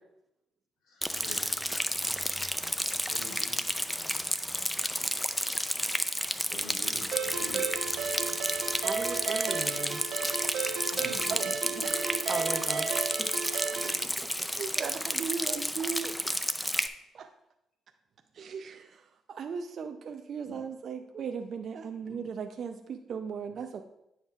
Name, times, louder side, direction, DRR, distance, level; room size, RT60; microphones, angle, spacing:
voice 1, 0.8-1.8 3.1-3.6 6.5-7.7 10.9-11.4 11.9-12.2 12.6-12.7 20.4-20.6 22.0-22.2, left 1 dB, 85° left, 0 dB, 1.9 m, -46 dB
Rain, 1.0-16.9, equal, 5° left, 0.4 m, -31 dB
Ringtone, 7.1-14.0, right 6 dB, 75° right, 0.8 m, -34 dB
voice 2, 8.7-10.0 12.3-13.3 13.8-13.9 14.2-14.3, right 2 dB, 30° right, 3 dB, 1.2 m, -38 dB
voice 3, 14.1-16.6 17.1-17.3 18.3-23.8, right 6 dB, 55° right, 5 dB, 0.4 m, -38 dB
9.8 x 7.2 x 2.4 m, 0.84 s
cardioid pair, 90°, 0 cm